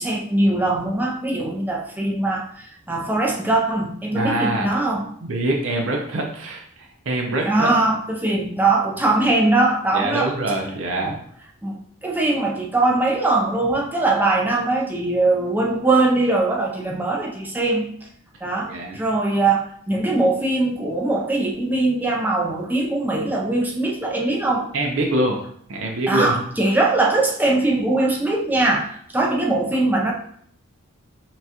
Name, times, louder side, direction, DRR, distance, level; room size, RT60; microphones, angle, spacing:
voice 1, 0.0-5.1 7.5-10.3 11.0-11.2 11.6-17.9 18.4-24.7 26.1-30.1, right 2 dB, 10° right, -1 dB, 0.4 m, -21 dB
voice 2, 4.1-4.8 5.2-7.7 9.9-11.2 18.7-19.0 24.7-25.4 25.7-26.4, right 1 dB, 60° right, 1 dB, 0.5 m, -24 dB
5.7 x 2.3 x 2.8 m, 0.64 s
head